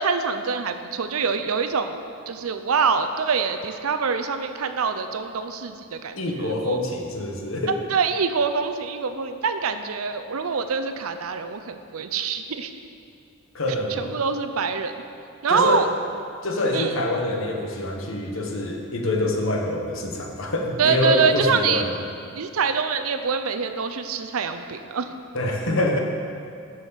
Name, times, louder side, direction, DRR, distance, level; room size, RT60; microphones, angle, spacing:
voice 1, 0.0-2.0 2.3-6.8 7.9-12.7 14.0-14.9 15.4-15.9 16.7-17.0 20.8-21.8 22.3-25.2, right 5 dB, 75° right, 9 dB, 0.6 m, -25 dB
voice 2, 6.2-7.8 13.5-14.2 15.5-15.9 16.4-21.9 25.3-26.0, left 1 dB, 65° left, 1 dB, 1.2 m, -25 dB
7.6 x 6.3 x 7.3 m, 2.5 s
head